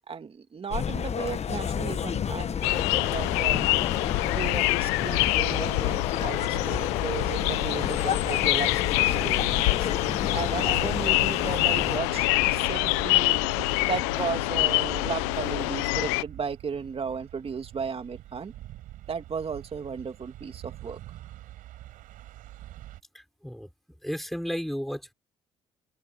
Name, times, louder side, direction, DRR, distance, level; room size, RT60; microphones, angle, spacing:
voice 1, 0.1-3.7 4.2-9.9 10.3-18.5 19.1-21.0, right 6 dB, 40° right, 2.9 m, -35 dB
sound 1, 0.7-12.0, left 8 dB, 50° left, 1.4 m, -31 dB
sound 2, 2.6-16.2, left 22 dB, 85° left, 1.0 m, -26 dB
sound 3, 6.5-23.0, right 14 dB, 75° right, 6.1 m, -43 dB
voice 2, 23.1-23.7 24.0-25.1, equal, ahead, 6.0 m, -33 dB
open air
hypercardioid pair, 55°, 14 cm